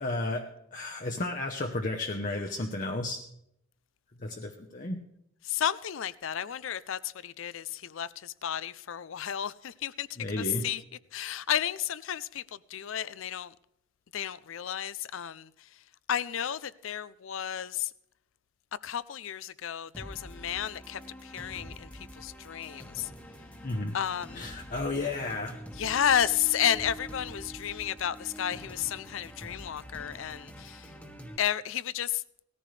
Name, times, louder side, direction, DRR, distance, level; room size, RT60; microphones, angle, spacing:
voice 1, 0.0-3.3 4.2-5.0 10.2-10.7 23.6-24.0 24.3-25.6, left 2 dB, 40° left, 0.9 m, -33 dB
voice 2, 5.4-10.1 10.4-10.8 11.1-13.5 14.1-15.8 16.1-17.9 18.8-23.1 23.9-24.5 25.8-30.9 31.4-32.2, left 10 dB, 70° left, 0.5 m, -32 dB
sound 1, 19.9-31.4, equal, 5° left, 1.3 m, -46 dB
18.5 x 14.0 x 3.3 m
head